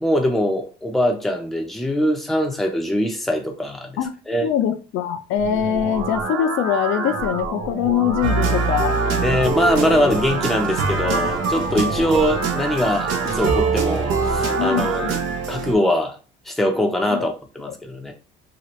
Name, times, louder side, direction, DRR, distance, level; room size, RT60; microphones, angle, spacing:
voice 1, 0.0-4.0 4.3-4.5 9.2-15.1 15.5-16.2 16.5-18.1, left 1 dB, ahead, 0.5 m, -22 dB
voice 2, 4.4-9.0 14.6-14.9 17.1-17.3 17.7-17.8, left 9 dB, 75° left, 0.5 m, -22 dB
sound 1, 5.4-15.4, right 3 dB, 65° right, 1.0 m, -28 dB
sound 2, 8.2-15.7, right 5 dB, 85° right, 0.7 m, -24 dB
2.8 x 2.4 x 3.1 m
cardioid pair, 120°, 20 cm